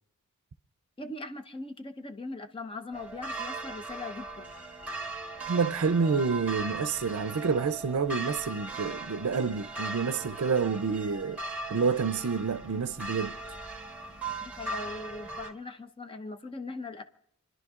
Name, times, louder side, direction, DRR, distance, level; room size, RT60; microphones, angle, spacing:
voice 1, 1.0-4.5 14.4-17.0, left 2 dB, 25° left, 0.7 m, -40 dB
sound 1, 2.9-15.5, right 3 dB, 5° right, 1.4 m, -39 dB
voice 2, 5.5-11.4 11.7-13.4, right 5 dB, 85° right, 0.5 m, -28 dB
28.5 x 11.0 x 2.4 m
head